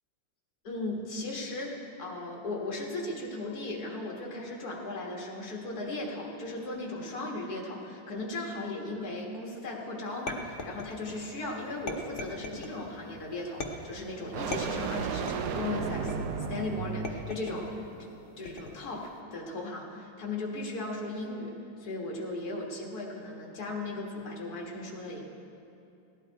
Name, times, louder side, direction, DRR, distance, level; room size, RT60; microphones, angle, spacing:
voice 1, 0.6-16.1 16.5-21.5 21.8-25.2, left 2 dB, 45° left, -1 dB, 2.0 m, -37 dB
sound 1, 10.3-11.2 11.9-12.8 13.6-14.0 14.5-15.6 16.1-16.5 17.0-17.7 18.5-18.9, left 2 dB, 85° left, 0.4 m, -39 dB
sound 2, 10.5-17.5, right 6 dB, 80° right, 1.6 m, -37 dB
16.5 x 10.5 x 4.6 m, 2.7 s
omnidirectional pair, 2.4 m